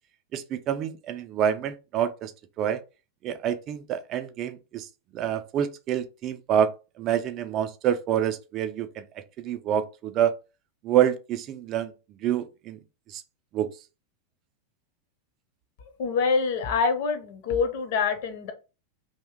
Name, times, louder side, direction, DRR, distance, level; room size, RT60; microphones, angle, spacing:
voice 1, 0.3-2.3 2.6-2.8 3.2-4.9 5.1-6.7 7.0-9.0 9.4-10.3 10.8-11.9 12.2-12.8 13.1-13.2 13.5-13.7, right 10 dB, 35° right, 0.4 m, -27 dB
voice 2, 16.0-18.5, left 5 dB, 50° left, 0.7 m, -25 dB
2.7 x 2.1 x 3.5 m
figure-of-eight pair, 90°, 0 cm